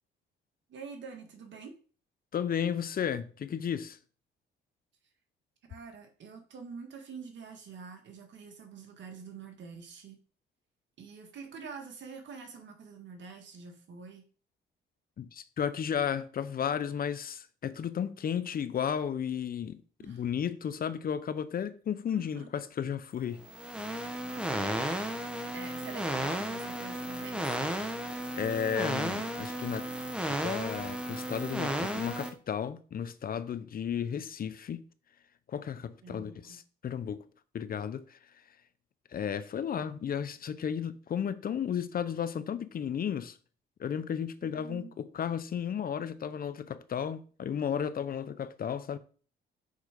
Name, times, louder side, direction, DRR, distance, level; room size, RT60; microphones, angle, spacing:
voice 1, 0.7-1.7 5.7-10.2 11.0-14.2 20.0-20.2 22.1-22.5 24.3-27.5 36.0-36.6 44.4-44.9, right 5 dB, 65° right, 1.8 m, -46 dB
voice 2, 2.3-4.0 15.2-23.5 28.3-29.9 30.3-34.8 35.5-37.2 37.5-38.4 39.1-43.4 43.8-49.0, left 8 dB, 45° left, 0.7 m, -34 dB
sound 1, 23.4-32.3, right 1 dB, 5° right, 1.2 m, -34 dB
6.5 x 4.7 x 5.2 m
cardioid pair, 90°, 20 cm